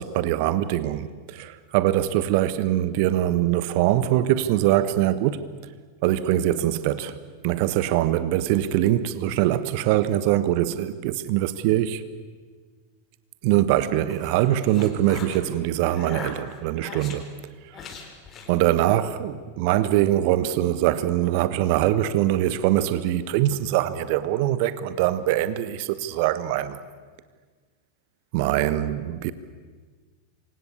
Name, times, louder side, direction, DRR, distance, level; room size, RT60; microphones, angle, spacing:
voice 1, 0.0-5.4 6.0-7.2 7.4-12.0 13.4-17.3 18.5-26.8 28.3-29.3, right 13 dB, 45° right, 1.2 m, -23 dB
sound 1, 13.8-15.4 15.9-17.2 17.7-18.5, left 5 dB, 30° left, 4.3 m, -39 dB
28.0 x 25.0 x 8.5 m
figure-of-eight pair, 90°, 0 cm